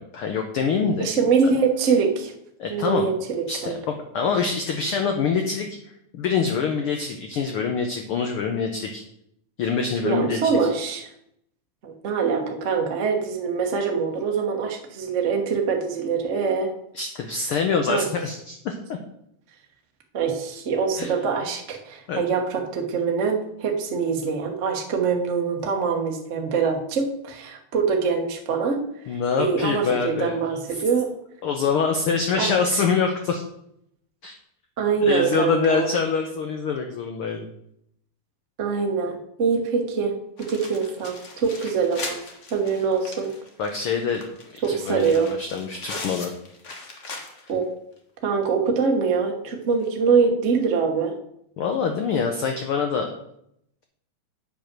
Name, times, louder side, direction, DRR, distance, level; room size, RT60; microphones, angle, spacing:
voice 1, 0.0-1.1 2.6-3.1 3.5-5.7 6.1-9.0 9.6-10.4 16.9-19.0 21.0-21.1 22.1-22.2 29.1-30.4 30.7-30.8 31.4-33.4 34.2-34.3 35.0-37.5 43.6-44.2 44.5-46.3 51.6-53.1, left 5 dB, 75° left, 4 dB, 1.3 m, -25 dB
voice 2, 1.0-2.3 2.7-3.8 10.0-11.1 11.8-16.7 17.9-18.1 20.1-28.8 29.4-31.1 32.4-32.5 34.8-35.9 38.6-42.2 42.5-43.3 44.6-45.3 47.5-47.6 48.2-51.1, right 5 dB, 65° right, 2 dB, 0.7 m, -24 dB
sound 1, 40.4-47.6 48.0-48.1 48.4-48.5 49.7-49.8, left 3 dB, 55° left, 0.8 m, -39 dB
8.8 x 5.3 x 6.0 m, 0.75 s
omnidirectional pair, 3.4 m